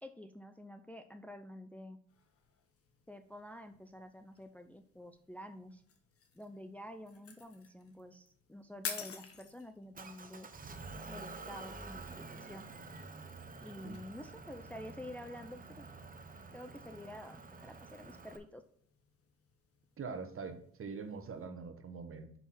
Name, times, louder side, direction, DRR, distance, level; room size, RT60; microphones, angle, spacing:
voice 1, 0.0-2.0 3.1-5.8 6.3-10.5 11.1-12.7 13.6-15.9 16.5-18.6, left 1 dB, 5° left, 7 dB, 0.5 m, -49 dB
sound 1, 2.1-21.5, left 6 dB, 50° left, 1.4 m, -53 dB
Motor vehicle (road) / Engine, 9.9-18.4, right 3 dB, 30° right, 1.0 m, -49 dB
voice 2, 20.0-22.3, right 5 dB, 45° right, 8 dB, 1.2 m, -43 dB
6.1 x 5.8 x 4.2 m, 0.63 s
cardioid pair, 90°, 30 cm